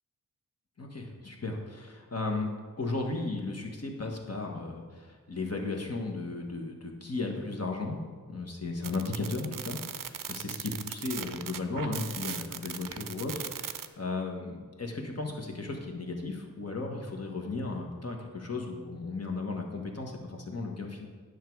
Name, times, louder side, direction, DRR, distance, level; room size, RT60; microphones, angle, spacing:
voice 1, 0.8-2.5 2.8-8.0 8.3-21.1, left 3 dB, 45° left, 2 dB, 1.4 m, -35 dB
sound 1, 8.8-13.9, right 8 dB, 70° right, 0.5 m, -38 dB
9.2 x 6.6 x 4.7 m, 1.5 s
wide cardioid pair, 60°, 34 cm